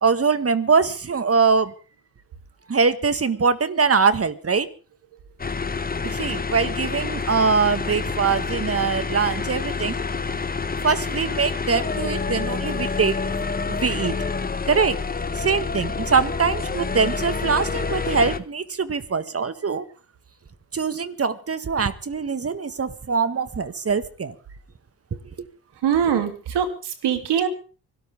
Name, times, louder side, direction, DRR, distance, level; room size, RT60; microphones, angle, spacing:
voice 1, 0.0-1.7 2.7-4.7 6.0-10.0 10.8-14.2 14.7-15.0 15.3-19.9 20.7-24.4 25.1-25.5, right 5 dB, 35° right, 12 dB, 1.7 m, -23 dB
sound 1, 5.4-18.4, left 4 dB, 20° left, 1.0 m, -28 dB
voice 2, 25.8-27.5, right 8 dB, 70° right, 7 dB, 3.0 m, -22 dB
24.5 x 13.0 x 3.6 m, 0.35 s
supercardioid pair, 65°, 42 cm